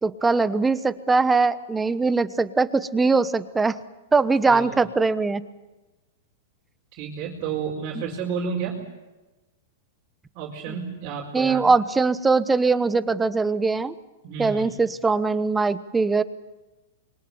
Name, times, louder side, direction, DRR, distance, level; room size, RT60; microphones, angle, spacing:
voice 1, 0.0-3.8 4.1-5.4 11.3-13.9 14.4-16.2, right 4 dB, 10° right, 14 dB, 1.0 m, -21 dB
voice 2, 4.5-4.8 6.9-8.8 10.3-11.7 14.2-14.7, right 6 dB, 40° right, -2 dB, 4.8 m, -31 dB
27.0 x 23.5 x 7.1 m, 1.1 s
hypercardioid pair, 140°, 0 cm